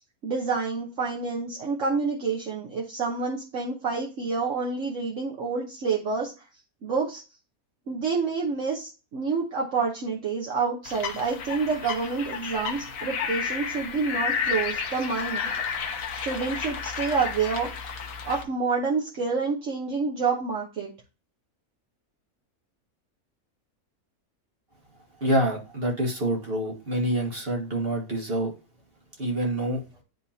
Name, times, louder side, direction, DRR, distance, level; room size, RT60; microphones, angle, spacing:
voice 1, 0.2-6.3 6.8-7.2 7.9-15.5 16.2-17.7 18.2-20.9, right 4 dB, 55° right, -2 dB, 1.4 m, -28 dB
sound 1, 10.8-18.4, left 6 dB, 65° left, 1.3 m, -32 dB
voice 2, 25.2-28.5 29.2-29.8, right 1 dB, 40° right, -1 dB, 1.7 m, -26 dB
10.5 x 3.6 x 2.8 m, 0.32 s
omnidirectional pair, 1.6 m